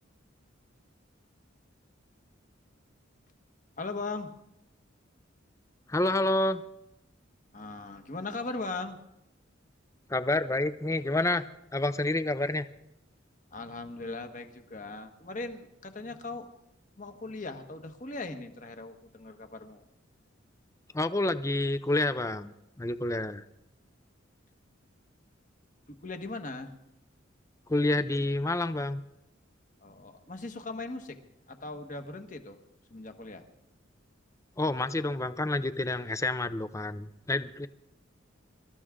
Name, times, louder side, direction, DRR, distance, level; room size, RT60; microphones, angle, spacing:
voice 1, 3.8-4.3 7.5-9.0 13.5-16.5 17.0-19.9 25.9-26.7 29.8-31.2 31.5-32.6 32.9-33.4, left 3 dB, 40° left, 7 dB, 1.3 m, -39 dB
voice 2, 5.9-6.6 10.1-11.4 11.7-12.7 20.9-23.4 27.7-29.0 34.6-37.7, left 2 dB, 15° left, 13 dB, 0.5 m, -28 dB
24.5 x 13.5 x 3.7 m, 0.85 s
head